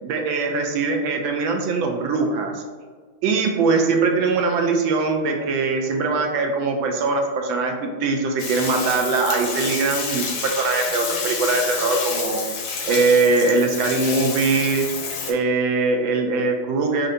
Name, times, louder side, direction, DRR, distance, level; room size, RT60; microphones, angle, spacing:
voice 1, 0.0-2.6 3.2-12.6 12.8-14.9 15.3-17.1, right 3 dB, 80° right, 3 dB, 1.3 m, -21 dB
Bathtub (filling or washing), 8.4-15.3, left 5 dB, 75° left, 1.3 m, -29 dB
5.4 x 2.5 x 2.6 m, 1.5 s
omnidirectional pair, 2.2 m